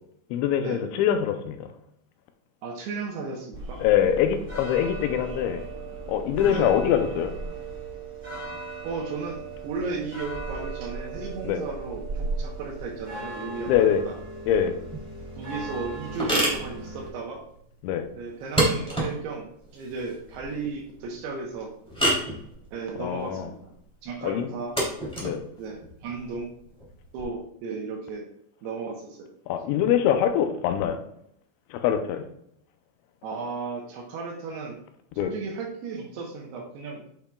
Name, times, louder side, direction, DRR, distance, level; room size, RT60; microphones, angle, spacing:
voice 1, 0.3-1.6 3.8-5.6 6.1-7.4 11.4-11.6 13.7-14.0 14.5-14.7 17.8-18.1 23.0-23.5 24.2-24.5 25.2-25.4 29.5-31.0 31.7-32.2 35.2-35.3, left 9 dB, 80° left, 7 dB, 3.0 m, -23 dB
voice 2, 2.6-3.8 6.5-6.7 8.8-14.2 15.4-17.4 18.2-21.8 22.7-23.7 24.0-24.7 25.6-26.5 27.1-28.3 28.6-29.3 33.2-34.8 35.2-37.0, right 4 dB, 70° right, 0 dB, 2.7 m, -35 dB
sound 1, 3.5-17.1, right 3 dB, 40° right, 0.7 m, -37 dB
sound 2, 14.8-27.2, right 1 dB, ahead, 1.8 m, -31 dB
8.8 x 7.7 x 2.3 m, 0.74 s
omnidirectional pair, 5.4 m